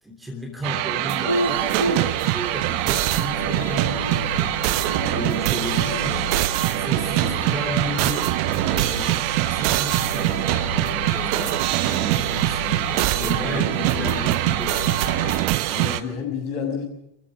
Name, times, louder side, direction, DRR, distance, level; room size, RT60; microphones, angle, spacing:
voice 1, 0.0-6.4 6.8-8.3 8.7-15.2, left 1 dB, 5° right, 3 dB, 3.2 m, -34 dB
sound 1, 0.6-16.0, right 17 dB, 45° right, 1.1 m, -23 dB
sound 2, 1.3-15.5, equal, 90° left, 2.4 m, -34 dB
sound 3, 2.9-15.4, right 2 dB, 60° right, 4.2 m, -34 dB
voice 2, 7.1-7.6 13.1-14.2 15.6-16.8, left 6 dB, 45° left, 1 dB, 7.0 m, -32 dB
28.0 x 15.0 x 6.3 m, 0.79 s
figure-of-eight pair, 90°, 0 cm